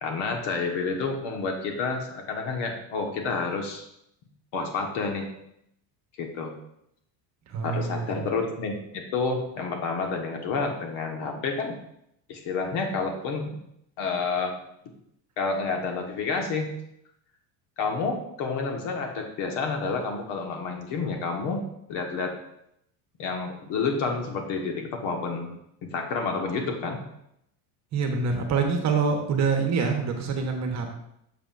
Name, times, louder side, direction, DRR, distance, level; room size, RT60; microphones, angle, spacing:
voice 1, 0.0-3.8 4.5-5.3 6.2-6.6 7.6-11.8 12.3-13.6 14.0-14.5 15.4-16.7 17.8-21.6 21.9-22.4 23.2-25.5 25.8-27.0, left 4 dB, 60° left, 3 dB, 1.6 m, -29 dB
voice 2, 7.5-8.2 27.9-30.9, right 5 dB, 35° right, 3 dB, 1.2 m, -26 dB
8.8 x 6.8 x 2.6 m, 0.77 s
cardioid pair, 135°, 46 cm